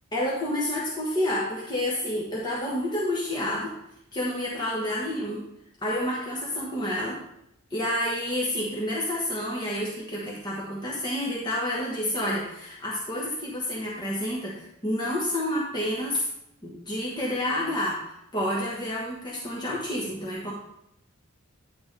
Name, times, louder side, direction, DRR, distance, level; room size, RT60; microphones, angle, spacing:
voice 1, 0.1-3.7 4.1-5.5 5.8-7.2 7.7-16.3 16.6-18.0 18.3-20.5, left 1 dB, 20° left, -5 dB, 1.2 m, -29 dB
9.7 x 6.1 x 3.3 m, 0.79 s
head